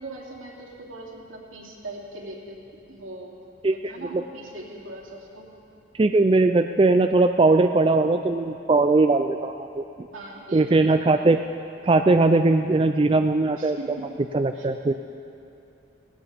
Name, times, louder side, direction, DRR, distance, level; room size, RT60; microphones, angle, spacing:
voice 1, 0.0-2.6 2.9-3.4 3.7-5.5 10.1-10.7 13.6-14.1 14.5-14.7, right 2 dB, 85° right, -3 dB, 2.9 m, -40 dB
voice 2, 3.6-4.2 6.0-9.8 10.5-11.4 11.8-13.8 14.3-15.0, right 3 dB, 25° right, 6 dB, 0.3 m, -20 dB
17.5 x 17.5 x 3.5 m, 2.8 s
head